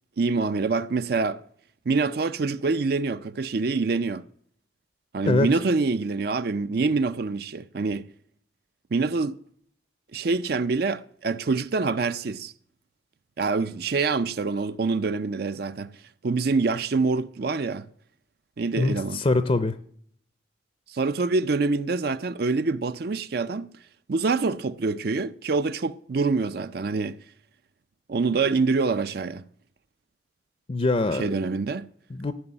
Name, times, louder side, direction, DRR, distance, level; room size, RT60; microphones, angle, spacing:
voice 1, 0.2-1.4 1.9-4.2 5.1-8.1 8.9-9.4 10.1-12.5 13.4-15.9 16.2-17.9 18.6-19.2 20.9-23.7 24.1-27.2 28.1-29.4 31.1-31.9, right 4 dB, 55° right, 0.5 m, -25 dB
voice 2, 18.8-19.8 30.7-31.3 32.1-32.3, left 2 dB, 30° left, 0.5 m, -23 dB
15.0 x 6.1 x 9.8 m
head